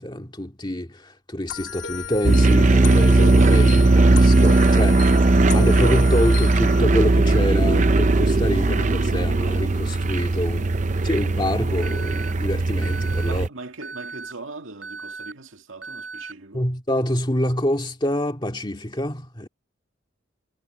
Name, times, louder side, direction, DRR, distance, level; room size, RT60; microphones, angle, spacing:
voice 1, 0.0-5.1 5.5-13.5 16.5-19.5, left 1 dB, 25° left, 2.1 m, -26 dB
sound 1, 1.5-6.8, left 6 dB, 65° left, 2.2 m, -34 dB
sound 2, 2.2-13.5, right 2 dB, 40° right, 0.6 m, -18 dB
Alarm, 11.8-12.3 12.8-13.3 13.8-14.3 14.8-15.3 15.8-16.3, right 4 dB, 65° right, 7.2 m, -37 dB
voice 2, 13.2-16.7, right 3 dB, 85° right, 2.1 m, -40 dB
head